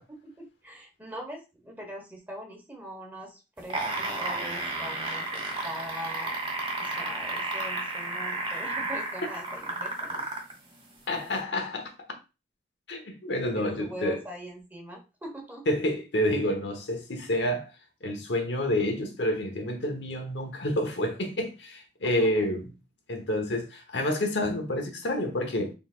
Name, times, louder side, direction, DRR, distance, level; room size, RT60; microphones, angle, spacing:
voice 1, 0.1-6.3 6.8-10.2 13.5-15.6 22.0-22.5, equal, 10° right, 1.4 m, -42 dB
sound 1, 3.6-10.5 11.4-11.5, right 2 dB, 30° right, 1.4 m, -32 dB
voice 2, 11.1-11.9 12.9-14.2 15.7-17.7 18.0-22.7 23.1-25.7, left 1 dB, 80° left, 1.1 m, -28 dB
4.2 x 4.0 x 2.4 m
head